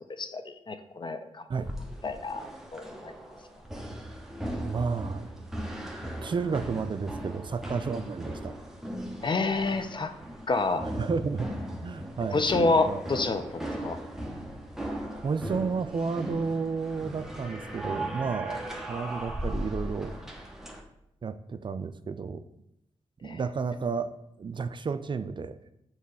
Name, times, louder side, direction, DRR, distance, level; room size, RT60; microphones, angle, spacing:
voice 1, 0.2-1.4 2.0-2.5 2.7-3.1 9.2-10.1 10.5-10.8 12.3-14.0 23.2-23.4, left 3 dB, 45° left, 9 dB, 0.7 m, -28 dB
sound 1, 1.6-20.8, right 1 dB, 5° right, 1.0 m, -38 dB
voice 2, 4.6-5.3 6.2-8.6 10.9-11.5 11.8-13.2 15.2-20.1 21.2-22.5 23.2-24.1 24.4-25.7, right 5 dB, 45° right, 11 dB, 0.4 m, -32 dB
6.5 x 3.1 x 5.4 m, 0.80 s
cardioid pair, 55°, 12 cm